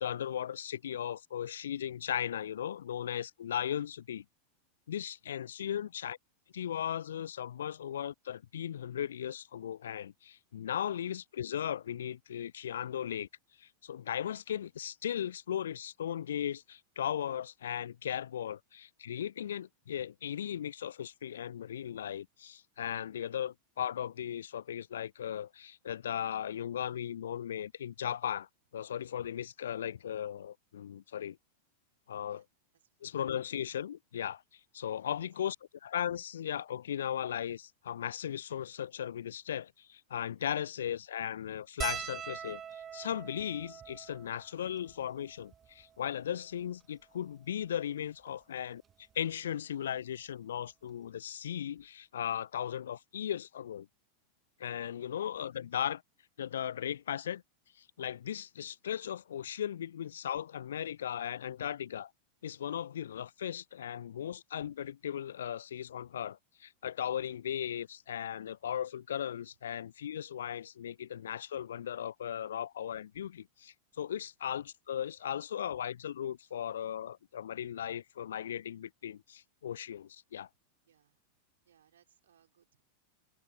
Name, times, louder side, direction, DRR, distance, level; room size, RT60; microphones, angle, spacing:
voice 1, 0.0-4.2 4.9-6.2 6.5-13.3 13.6-28.5 28.7-31.4 32.1-32.4 33.0-35.6 35.8-48.8 49.1-53.9 54.6-56.0 56.4-57.4 57.8-62.1 62.4-80.5, left 9 dB, 65° left, 0.3 m, -37 dB
sound 1, 41.8-46.4 47.1-47.2 47.4-47.6 48.9-49.1 50.6-50.7 50.9-51.1, right 8 dB, 25° right, 0.7 m, -43 dB
voice 2, 80.8-81.2 81.6-82.8, right 9 dB, 65° right, 4.5 m, -68 dB
figure-of-eight pair, 90°, 0 cm